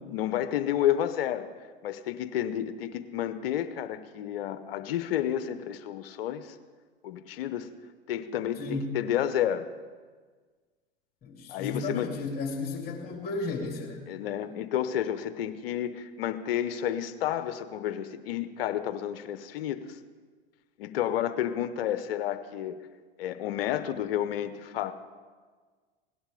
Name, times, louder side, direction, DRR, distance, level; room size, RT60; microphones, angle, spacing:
voice 1, 0.0-1.5 1.8-6.6 7.0-7.7 8.1-9.7 11.5-12.1 14.1-20.0 20.8-22.8 23.2-24.9, left 11 dB, 65° left, 11 dB, 0.9 m, -30 dB
voice 2, 8.6-9.0 11.2-14.1, left 3 dB, 30° left, -1 dB, 2.7 m, -34 dB
17.0 x 11.0 x 3.8 m, 1.5 s
hypercardioid pair, 90°, 31 cm